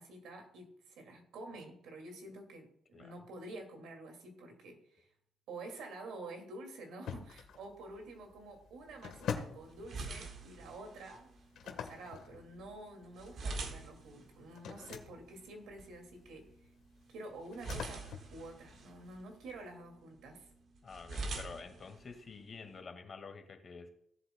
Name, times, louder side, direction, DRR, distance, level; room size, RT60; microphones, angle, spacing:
voice 1, 0.0-5.1 5.5-11.3 11.6-16.5 17.1-20.5, right 2 dB, 80° right, 4 dB, 2.2 m, -49 dB
sound 1, 7.1-19.7, left 7 dB, 75° left, 1.2 m, -47 dB
sound 2, 8.8-22.8, right 3 dB, 60° right, 1.4 m, -47 dB
voice 2, 20.8-23.9, left 4 dB, 40° left, 5 dB, 1.8 m, -49 dB
16.5 x 7.7 x 2.2 m, 0.69 s
cardioid pair, 90°, 0 cm